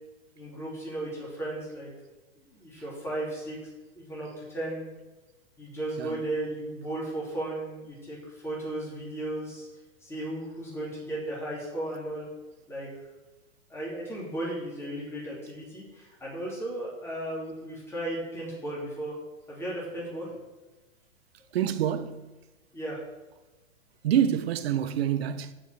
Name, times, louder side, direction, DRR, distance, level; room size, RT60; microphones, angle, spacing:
voice 1, 0.3-1.9 2.4-3.6 3.9-4.9 5.6-9.7 10.0-12.3 12.7-12.9 13.7-19.2 19.5-20.3 22.7-23.0, right 1 dB, 5° left, 2.9 m, -35 dB
voice 2, 21.5-22.4 24.0-25.5, right 10 dB, 60° right, 0.9 m, -27 dB
7.0 x 6.1 x 7.5 m
hypercardioid pair, 150°, 36 cm